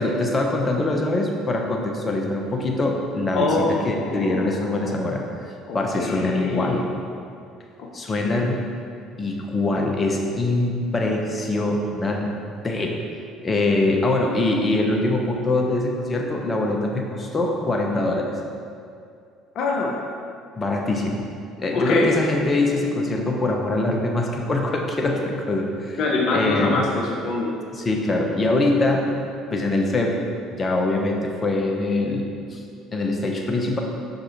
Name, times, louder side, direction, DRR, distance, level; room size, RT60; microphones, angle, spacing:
voice 1, 0.0-5.2 5.7-6.9 7.9-8.6 9.2-12.3 12.6-13.0 13.4-18.4 20.6-21.3 21.6-26.0 26.3-26.8 27.7-29.1 29.5-30.2 30.5-32.6 32.9-33.8, left 2 dB, 30° left, 1 dB, 0.9 m, -23 dB
voice 2, 3.3-5.1 5.7-6.9 7.8-7.9 8.2-8.7 19.5-20.0 21.7-22.1 26.0-27.6, left 3 dB, 55° left, -1 dB, 0.7 m, -25 dB
5.7 x 5.3 x 4.2 m, 2.4 s
hypercardioid pair, 60°, 0 cm